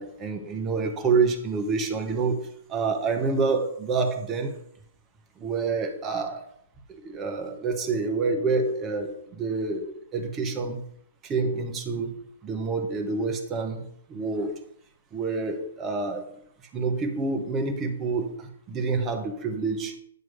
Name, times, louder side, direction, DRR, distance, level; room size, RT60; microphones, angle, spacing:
voice 1, 0.0-4.6 5.4-6.4 6.9-10.8 11.2-14.6 15.1-16.3 16.7-20.0, right 4 dB, 20° right, 4 dB, 1.2 m, -28 dB
9.3 x 3.1 x 5.6 m, 0.65 s
figure-of-eight pair, 125°, 0 cm